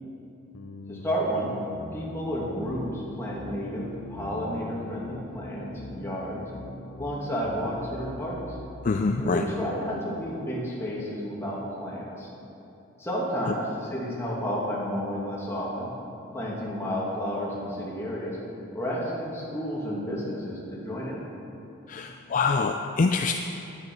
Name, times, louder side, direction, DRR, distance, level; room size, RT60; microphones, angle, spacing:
sound 1, 0.5-10.0, left 1 dB, 70° left, 0.7 m, -42 dB
voice 1, 0.9-1.5 1.9-6.4 7.0-8.6 9.2-12.3 13.0-16.0 16.3-18.4 18.7-21.2, equal, 10° left, -6 dB, 2.3 m, -31 dB
voice 2, 8.8-9.4 21.9-23.3, left 4 dB, 40° left, 5 dB, 0.4 m, -25 dB
10.5 x 9.4 x 6.0 m, 3.0 s
head